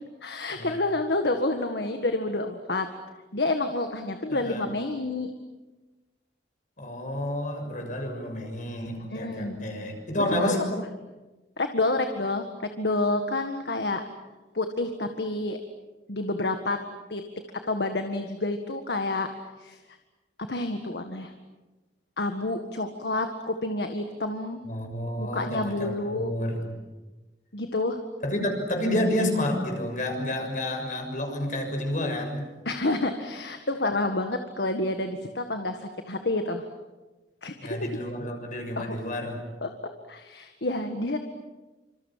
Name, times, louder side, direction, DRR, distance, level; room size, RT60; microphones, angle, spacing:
voice 1, 0.2-2.9 3.3-5.3 9.1-9.7 10.4-10.6 11.6-14.0 14.5-15.6 16.1-16.8 17.1-17.2 17.7-19.3 19.6-19.8 20.5-21.3 22.2-24.6 25.2-26.3 27.5-28.0 32.7-36.6 37.4-37.8 38.8-39.0 39.6-39.7 40.1-41.2, left 2 dB, 70° left, 6 dB, 1.8 m, -29 dB
voice 2, 4.3-4.6 6.8-10.6 24.6-26.7 28.2-32.5 37.6-39.4, left 1 dB, 45° left, 3 dB, 6.7 m, -30 dB
27.0 x 27.0 x 7.5 m, 1.2 s
head